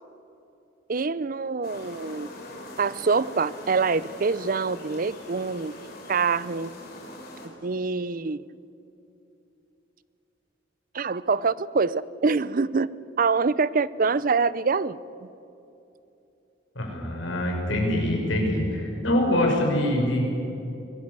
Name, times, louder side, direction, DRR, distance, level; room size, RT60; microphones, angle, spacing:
voice 1, 0.9-2.3 2.8-6.7 7.4-8.4 10.9-12.9 13.2-15.0, right 4 dB, 45° right, 19 dB, 0.6 m, -25 dB
sound 1, 1.6-7.5, left 2 dB, 55° left, 4.9 m, -42 dB
voice 2, 16.7-20.2, left 1 dB, 75° left, 0 dB, 6.0 m, -24 dB
24.5 x 18.5 x 8.3 m, 2.9 s
head